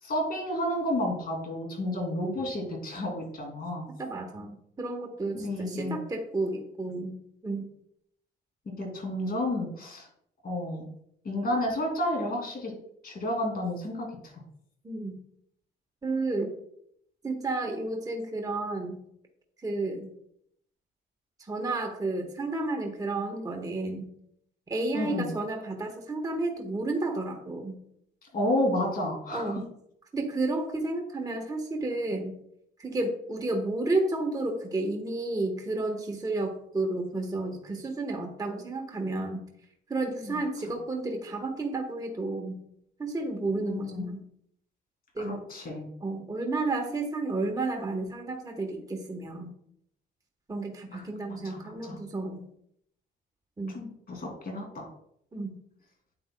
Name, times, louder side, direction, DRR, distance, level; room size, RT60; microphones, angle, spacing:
voice 1, 0.0-3.9 5.3-6.0 8.7-10.1 10.4-10.9 11.2-12.7 13.0-14.3 24.9-25.3 28.3-29.6 40.2-40.4 43.6-44.1 45.2-45.9 50.9-51.0 51.4-51.9 53.7-54.9, left 1 dB, 50° left, 2 dB, 2.8 m, -31 dB
voice 2, 4.0-7.2 7.4-7.7 14.8-15.2 16.0-16.6 17.2-19.0 19.6-20.1 21.4-24.1 24.7-27.8 29.3-29.6 30.1-32.3 32.8-39.4 39.9-42.6 43.0-44.2 45.1-45.4 46.0-49.5 50.5-52.4 53.6-53.8 55.3-55.6, right 2 dB, 20° right, 2 dB, 1.2 m, -31 dB
8.5 x 7.7 x 2.2 m, 0.71 s
cardioid pair, 90°, 20 cm